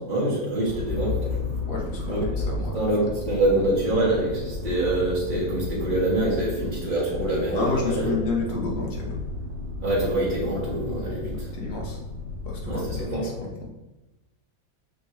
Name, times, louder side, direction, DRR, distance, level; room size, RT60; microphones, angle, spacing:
voice 1, 0.1-1.5 2.0-2.3 2.7-8.1 9.8-11.5 12.6-13.3, right 1 dB, 25° right, -6 dB, 2.3 m, -25 dB
Motor vehicle (road), 0.6-13.0, left 2 dB, 45° right, 1.2 m, -33 dB
voice 2, 1.7-2.9 7.5-9.2 11.5-12.0 12.5-13.6, left 3 dB, 55° left, -1 dB, 1.8 m, -30 dB
6.5 x 6.1 x 3.2 m, 1.0 s
omnidirectional pair, 2.1 m